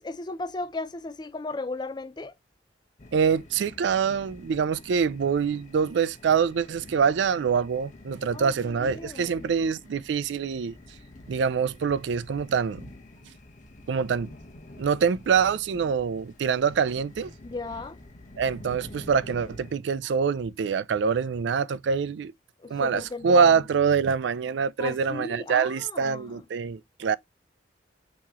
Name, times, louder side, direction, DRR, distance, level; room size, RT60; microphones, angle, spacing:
voice 1, 0.0-2.3 8.3-9.5 17.4-18.0 22.6-23.6 24.8-26.4, left 3 dB, 25° left, 0.5 m, -36 dB
sound 1, 3.0-19.8, left 1 dB, 45° left, 1.0 m, -48 dB
voice 2, 3.1-10.8 11.3-12.8 13.9-14.3 14.8-17.3 18.4-22.3 22.7-27.2, right 6 dB, 75° right, 0.4 m, -25 dB
5.9 x 3.0 x 2.9 m
head